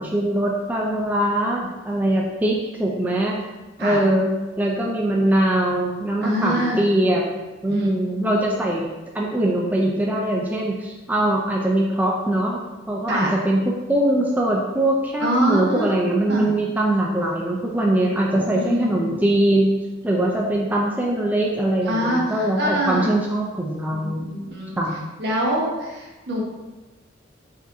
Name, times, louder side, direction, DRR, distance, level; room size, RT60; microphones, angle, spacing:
voice 1, 0.0-3.4 3.8-7.2 7.6-8.8 9.1-12.6 12.9-13.6 13.9-19.7 20.0-24.3 24.8-25.0, right 1 dB, 10° right, -2 dB, 0.4 m, -22 dB
voice 2, 6.2-6.9 7.7-7.9 8.2-8.3 13.1-13.4 15.2-16.5 18.3-19.1 21.8-23.1 23.9-24.8 25.2-26.4, equal, 60° right, -2 dB, 1.1 m, -25 dB
4.9 x 3.9 x 2.7 m, 1.1 s
head